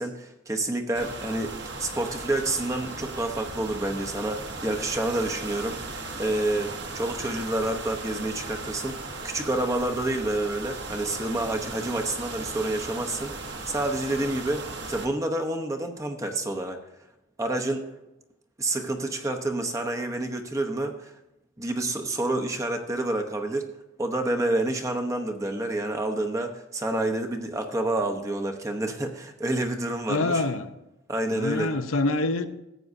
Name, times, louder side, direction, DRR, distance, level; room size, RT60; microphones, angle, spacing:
voice 1, 0.0-1.5 1.8-5.8 6.2-16.8 17.4-17.9 18.6-21.1 21.6-23.7 24.0-30.4 31.1-31.7, right 1 dB, 15° right, 4 dB, 0.8 m, -28 dB
sound 1, 0.9-15.1, right 3 dB, 55° right, 1.3 m, -37 dB
voice 2, 30.1-30.7 31.3-32.5, left 2 dB, 85° left, 8 dB, 0.7 m, -25 dB
14.5 x 8.5 x 2.7 m, 0.92 s
head